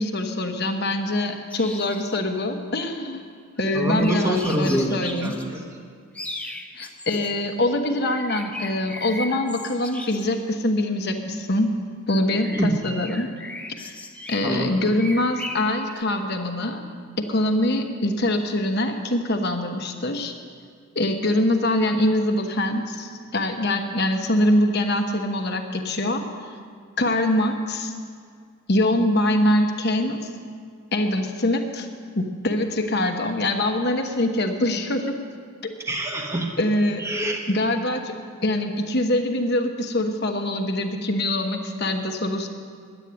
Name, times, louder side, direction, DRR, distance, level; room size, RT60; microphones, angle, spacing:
voice 1, 0.0-3.2 3.6-5.3 6.7-11.7 12.1-13.3 13.8-14.0 14.3-16.8 17.2-20.3 20.9-26.2 27.0-27.9 28.7-30.3 30.9-31.9 32.2-35.2 36.6-37.0 37.5-38.1 38.4-42.5, left 1 dB, 50° left, 5 dB, 1.1 m, -24 dB
sound 1, 1.5-2.2 3.6-5.5 6.1-7.3 8.0-10.3 12.1-14.5 14.9-16.0, left 2 dB, 5° left, 0.6 m, -38 dB
voice 2, 3.7-5.6 12.3-12.8 14.4-14.7 35.9-36.5 37.0-37.4, right 1 dB, 15° right, 1 dB, 1.1 m, -25 dB
11.5 x 9.0 x 9.5 m, 2.1 s
head